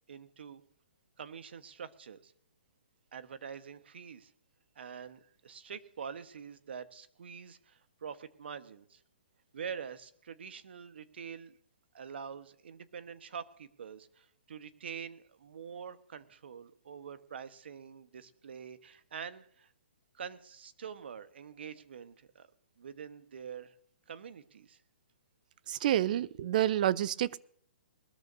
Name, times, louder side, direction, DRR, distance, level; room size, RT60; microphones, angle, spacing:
voice 1, 0.1-0.6 1.2-2.3 3.1-4.3 4.7-9.0 9.5-11.5 11.9-19.7 20.1-22.5 22.8-23.7 24.1-24.8, right 7 dB, 65° right, 1.2 m, -45 dB
voice 2, 25.7-27.4, right 12 dB, 45° right, 0.5 m, -28 dB
21.0 x 13.5 x 2.7 m
hypercardioid pair, 145°, 6 cm